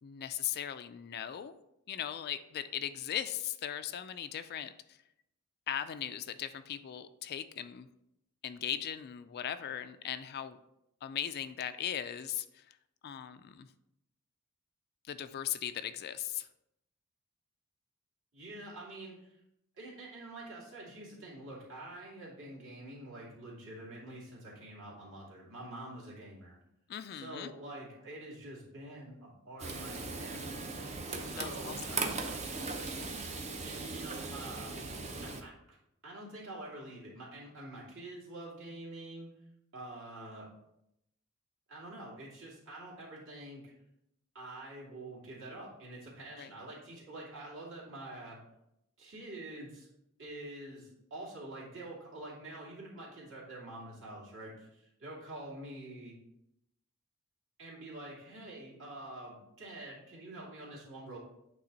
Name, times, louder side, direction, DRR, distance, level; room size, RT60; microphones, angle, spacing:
voice 1, 0.0-1.5 1.9-4.7 5.7-7.9 8.4-10.6 11.0-12.7 13.0-13.7 15.1-16.5 26.9-27.5 31.4-32.0 46.4-46.5, left 10 dB, 45° left, 11 dB, 0.3 m, -38 dB
voice 2, 18.3-19.3 19.8-26.6 27.1-30.7 31.2-32.1 33.6-34.7 35.2-35.8 36.0-39.3 39.7-40.5 41.7-43.7 44.3-48.4 49.0-49.9 50.2-56.1 57.6-61.2, right 1 dB, 60° right, -5 dB, 2.4 m, -46 dB
Frying (food), 29.6-35.4, right 3 dB, 30° right, 0.7 m, -38 dB
8.5 x 3.5 x 3.9 m, 0.83 s
head